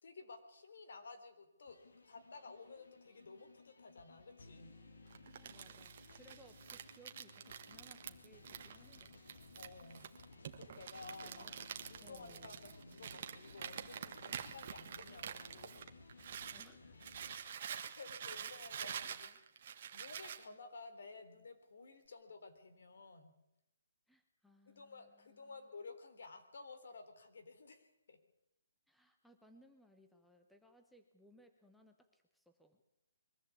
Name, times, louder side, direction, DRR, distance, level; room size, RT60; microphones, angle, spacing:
voice 1, 0.0-1.8 2.1-4.7 9.6-10.2 10.6-11.5 11.9-15.8 18.0-19.3 19.6-19.7 19.9-23.3 24.7-28.2, left 3 dB, 65° left, 8 dB, 3.7 m, -54 dB
sound 1, 1.7-17.4, left 3 dB, 85° left, 3.9 m, -59 dB
voice 2, 5.0-9.4 11.2-11.5 12.0-12.6 16.5-17.1 19.0-19.4 24.1-25.6 28.9-32.8, equal, ahead, 5 dB, 1.0 m, -65 dB
Crumpling crinkling, 5.1-16.7 17.0-20.4, right 8 dB, 40° right, 1.6 m, -47 dB
22.5 x 14.5 x 8.5 m, 0.86 s
hypercardioid pair, 165°, 0 cm